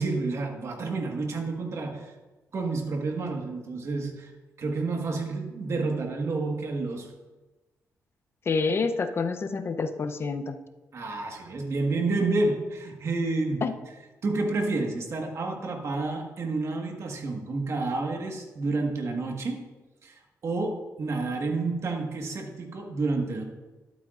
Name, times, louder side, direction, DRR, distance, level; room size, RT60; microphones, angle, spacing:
voice 1, 0.0-2.1 2.5-4.3 4.6-7.1 10.9-13.6 14.2-19.6 20.0-20.1 20.4-23.4, right 3 dB, 55° right, 2 dB, 1.6 m, -29 dB
voice 2, 8.5-10.6 13.6-13.7, left 4 dB, 45° left, 8 dB, 0.7 m, -27 dB
12.0 x 8.3 x 2.6 m, 1.1 s
cardioid pair, 75°, 6 cm